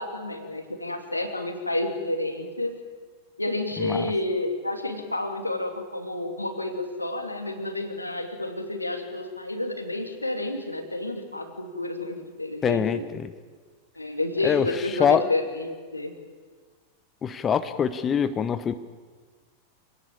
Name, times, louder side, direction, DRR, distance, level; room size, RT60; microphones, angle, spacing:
voice 1, 0.0-2.8 3.4-13.0 14.0-16.1, left 2 dB, 85° left, 5 dB, 2.8 m, -30 dB
voice 2, 3.8-4.1 12.6-13.0 14.4-14.7 15.0-15.2 17.2-18.7, left 8 dB, 25° left, 12 dB, 0.9 m, -23 dB
26.5 x 17.5 x 8.6 m, 1.5 s
figure-of-eight pair, 90°, 0 cm